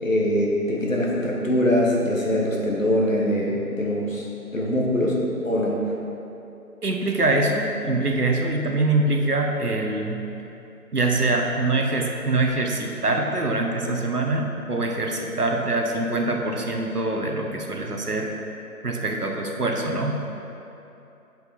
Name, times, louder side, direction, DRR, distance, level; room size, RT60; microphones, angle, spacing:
voice 1, 0.0-4.3 4.5-5.8, left 1 dB, 55° left, -3 dB, 1.4 m, -23 dB
voice 2, 6.8-10.2 10.9-18.3 18.8-20.2, right 2 dB, 75° right, 1 dB, 1.1 m, -24 dB
8.2 x 5.2 x 4.2 m, 2.8 s
figure-of-eight pair, 175°, 46 cm